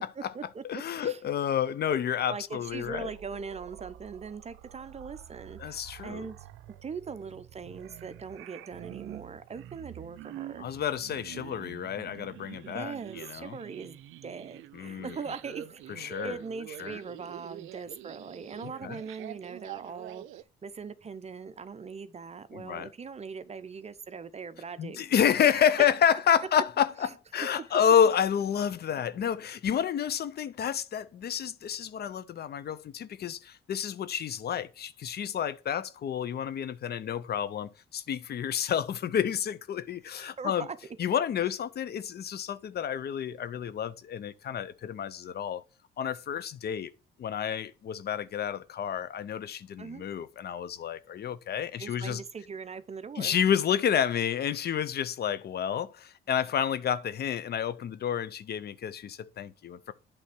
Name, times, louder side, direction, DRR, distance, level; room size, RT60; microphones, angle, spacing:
voice 1, 0.0-0.6 1.0-1.2 2.3-6.4 6.7-10.7 12.7-25.6 27.0-27.1 27.6-27.7 40.1-40.8 49.8-50.0 51.8-53.5, right 5 dB, 35° right, 0.7 m, -41 dB
voice 2, 0.7-3.1 5.6-6.3 10.6-13.6 14.7-15.1 16.0-16.4 16.8-17.0 18.6-19.0 22.5-22.9 24.8-40.7 41.0-45.6 46.0-46.9 47.2-52.2 53.2-59.9, left 8 dB, 55° left, 0.6 m, -29 dB
sound 1, 2.7-20.4, right 14 dB, 80° right, 0.5 m, -46 dB
8.4 x 3.5 x 6.0 m
cardioid pair, 90°, 20 cm